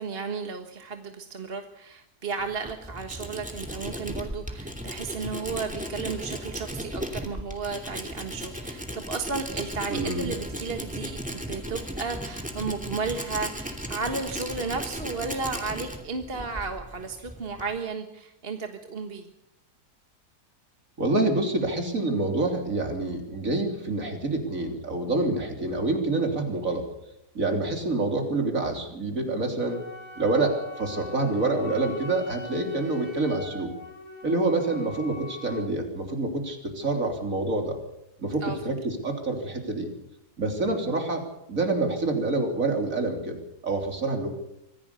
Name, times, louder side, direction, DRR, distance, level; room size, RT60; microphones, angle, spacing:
voice 1, 0.0-19.3 38.4-38.6, right 4 dB, 40° right, 5 dB, 1.6 m, -34 dB
Tools, 2.4-17.8, equal, 5° right, 2.7 m, -36 dB
voice 2, 9.9-10.3 21.0-26.9 27.4-29.8 30.2-33.7 34.2-37.8 38.2-39.9 40.4-44.3, right 2 dB, 55° right, 4 dB, 3.8 m, -27 dB
Wind instrument woodwind instrument, 29.6-35.7, left 3 dB, 80° left, 8.7 m, -43 dB
25.0 x 16.5 x 6.9 m, 0.82 s
omnidirectional pair, 1.7 m